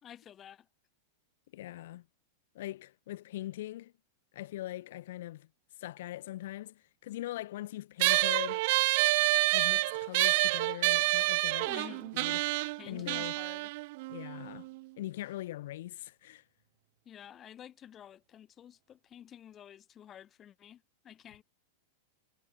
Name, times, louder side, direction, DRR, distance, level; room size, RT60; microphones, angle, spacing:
voice 1, 0.0-0.7 11.6-12.1 12.8-13.7 17.1-21.4, left 10 dB, 30° left, 1.8 m, -51 dB
voice 2, 1.5-2.1 2.5-3.9 4.3-5.5 5.8-8.7 9.5-11.9 12.1-12.5 12.9-13.4 14.1-14.7 15.0-16.4, left 15 dB, 65° left, 2.1 m, -41 dB
sound 1, 8.0-14.8, right 23 dB, 55° right, 0.3 m, -28 dB
hypercardioid pair, 100°, 0 cm